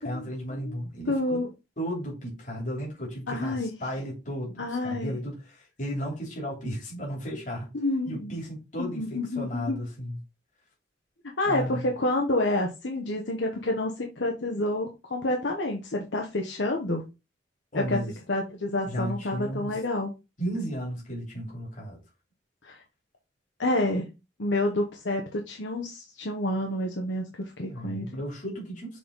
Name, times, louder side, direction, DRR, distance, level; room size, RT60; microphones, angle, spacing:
voice 1, 0.0-1.4 1.8-7.7 8.0-10.2 11.4-11.9 17.7-18.1 18.8-19.8 20.4-22.0 27.7-29.0, equal, 45° left, 3.1 m, -34 dB
voice 2, 1.1-1.5 3.3-3.7 4.6-5.2 7.7-8.4 8.8-9.8 11.4-17.0 17.7-18.0 18.3-20.2 22.6-22.8 23.6-24.1 24.4-28.1, left 2 dB, 90° left, 1.1 m, -28 dB
6.6 x 3.7 x 3.9 m
head